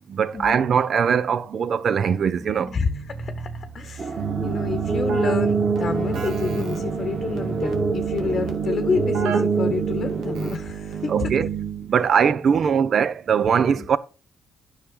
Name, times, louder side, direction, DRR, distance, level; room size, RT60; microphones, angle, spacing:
voice 1, 0.1-2.7 11.1-11.5 11.9-14.0, right 7 dB, 55° right, 0.6 m, -21 dB
sound 1, 2.4-8.6, right 4 dB, 20° right, 1.4 m, -36 dB
voice 2, 2.7-11.3 13.8-13.9, left 5 dB, 45° left, 1.0 m, -29 dB
sound 2, 4.0-10.5, right 3 dB, 40° right, 1.0 m, -31 dB
Keyboard (musical), 4.2-12.0, right 5 dB, 75° right, 1.8 m, -26 dB
9.7 x 6.4 x 3.8 m
cardioid pair, 90°, 0 cm